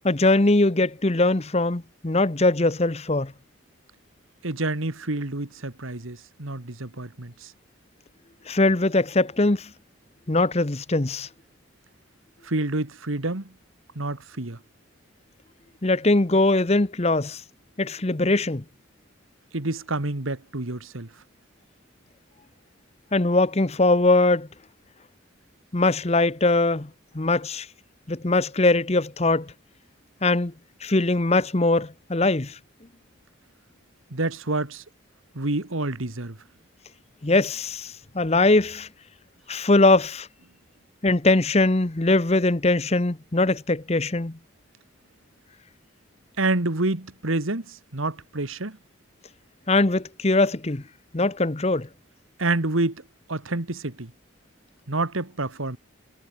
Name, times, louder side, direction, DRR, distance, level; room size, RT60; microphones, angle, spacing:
voice 1, 0.0-3.3 8.5-9.7 10.3-11.3 15.8-17.4 17.8-18.6 23.1-24.5 25.7-26.9 27.1-27.7 28.1-29.5 30.2-30.5 30.8-32.5 37.2-38.9 39.5-40.3 41.0-44.4 49.7-50.8 51.1-51.9, left 2 dB, 30° left, 0.9 m, -21 dB
voice 2, 4.4-7.5 12.4-13.5 14.0-14.6 19.5-21.1 34.1-34.8 35.3-36.4 46.4-48.8 52.4-53.0 53.3-54.1 54.9-55.8, right 2 dB, 80° right, 2.0 m, -28 dB
head